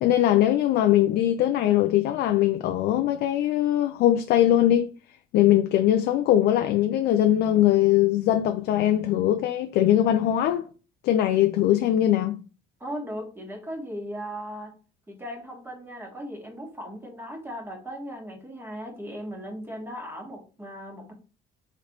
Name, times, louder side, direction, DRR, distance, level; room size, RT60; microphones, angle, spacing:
voice 1, 0.0-4.9 5.3-10.7 11.0-12.4, left 12 dB, 75° left, 0.4 m, -21 dB
voice 2, 12.8-14.7 15.1-21.1, equal, 15° right, 1.3 m, -37 dB
3.8 x 3.2 x 3.0 m
cardioid pair, 110°, 17 cm